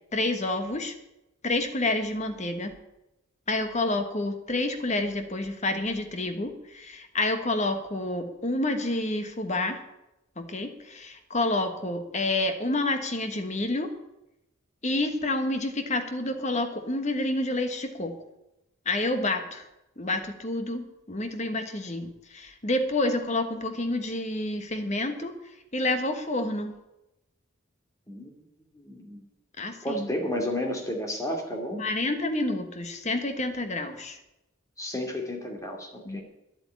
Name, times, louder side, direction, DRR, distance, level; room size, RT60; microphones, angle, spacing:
voice 1, 0.1-0.9 1.4-2.7 3.5-9.8 10.4-13.9 14.8-18.1 18.8-19.7 20.0-26.7 29.6-30.1 31.8-34.2 36.0-36.2, left 2 dB, 35° left, 8 dB, 1.3 m, -29 dB
voice 2, 28.8-29.2 29.8-31.8 34.8-36.2, left 1 dB, 15° left, 2 dB, 2.5 m, -32 dB
11.0 x 8.2 x 9.5 m, 0.92 s
head